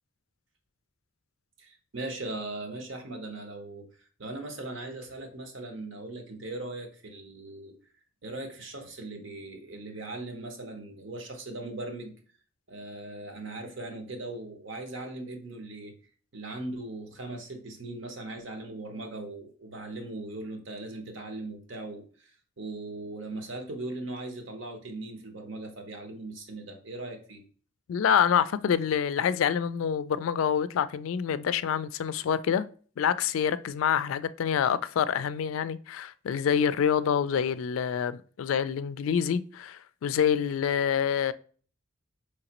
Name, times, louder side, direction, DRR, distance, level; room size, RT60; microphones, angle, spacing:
voice 1, 1.6-7.7 8.2-12.1 12.7-15.9 16.3-27.4, right 2 dB, 70° right, 0.9 m, -39 dB
voice 2, 27.9-32.6 33.0-41.3, left 8 dB, 85° left, 0.3 m, -26 dB
4.9 x 3.2 x 2.9 m
head